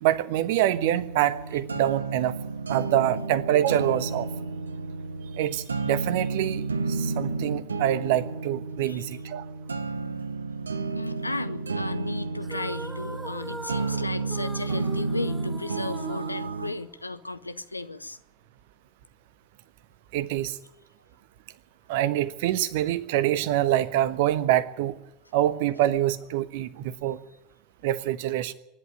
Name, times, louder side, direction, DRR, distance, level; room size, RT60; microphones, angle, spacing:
voice 1, 0.0-2.4 2.7-4.3 5.3-9.4 20.1-20.6 21.9-25.0 25.3-27.2 27.8-28.5, right 12 dB, 55° right, 15 dB, 1.1 m, -25 dB
sound 1, 0.6-16.7, right 3 dB, 80° right, 0.8 m, -32 dB
voice 2, 9.8-10.3 10.9-18.2, left 2 dB, 85° left, 13 dB, 0.8 m, -35 dB
sound 2, 12.4-17.2, right 2 dB, 10° right, 1.7 m, -41 dB
24.0 x 11.0 x 9.9 m, 0.85 s
figure-of-eight pair, 75°, 0 cm